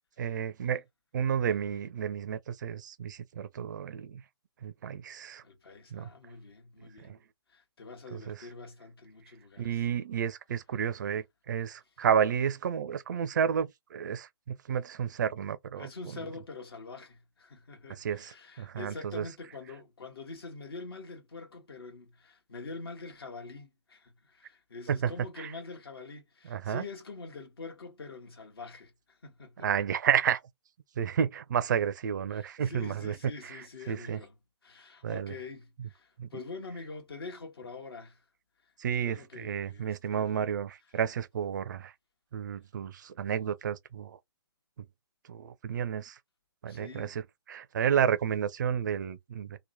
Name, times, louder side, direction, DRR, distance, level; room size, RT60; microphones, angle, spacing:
voice 1, 0.2-0.8 1.1-4.2 4.6-5.4 5.9-6.1 7.0-7.2 8.1-8.4 9.6-15.9 18.0-19.2 24.9-25.1 25.4-25.5 26.5-26.8 29.6-30.4 31.0-34.2 35.0-35.3 36.2-36.3 38.8-41.9 42.3-44.2 45.3-46.2 46.6-47.2 47.5-49.6, right 8 dB, 45° right, 0.4 m, -31 dB
voice 2, 5.4-7.2 7.5-9.8 15.7-29.7 32.3-34.4 34.6-38.2 38.6-38.7 39.0-40.3 46.7-47.2, left 3 dB, 60° left, 1.2 m, -45 dB
2.9 x 2.1 x 2.6 m
figure-of-eight pair, 135°, 14 cm